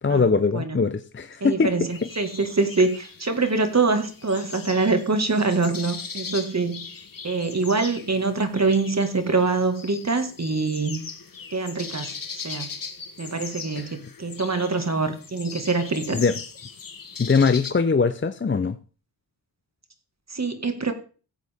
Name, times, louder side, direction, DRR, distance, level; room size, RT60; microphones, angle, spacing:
voice 1, 0.0-1.7 13.8-13.9 16.1-16.3 17.2-18.8, left 4 dB, 30° left, 0.7 m, -21 dB
voice 2, 1.4-6.9 7.2-11.1 11.5-12.7 13.2-16.2 20.3-20.9, right 3 dB, 40° right, 1.9 m, -24 dB
sound 1, 1.9-17.7, left 5 dB, 55° left, 1.5 m, -39 dB
15.5 x 8.1 x 3.6 m
cardioid pair, 55°, 42 cm